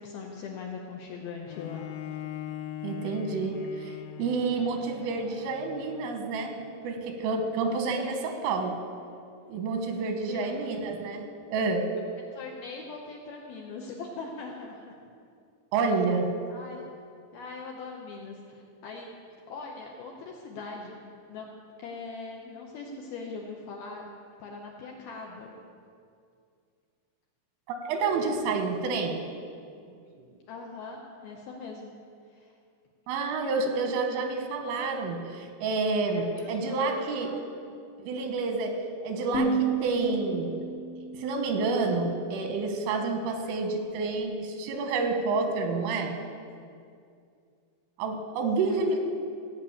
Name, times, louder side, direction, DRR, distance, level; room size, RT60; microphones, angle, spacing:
voice 1, 0.0-2.2 7.7-8.2 10.1-10.6 12.3-15.0 16.5-16.8 17.3-19.1 19.5-21.5 21.8-24.1 24.4-25.5 30.5-32.0 32.3-32.5 36.1-37.4 48.6-49.0, left 4 dB, 75° left, -1 dB, 2.3 m, -41 dB
Bowed string instrument, 1.5-6.7, left 11 dB, 90° left, 3.1 m, -41 dB
voice 2, 2.8-6.5 6.8-8.8 9.5-11.9 15.7-16.3 27.7-29.2 30.2-30.3 33.1-37.3 38.0-40.5 41.1-46.2 48.0-49.0, right 3 dB, 90° right, 4 dB, 3.9 m, -29 dB
sound 1, 39.3-42.3, right 4 dB, 30° left, 1.1 m, -32 dB
16.0 x 6.1 x 8.7 m, 2.3 s
omnidirectional pair, 5.5 m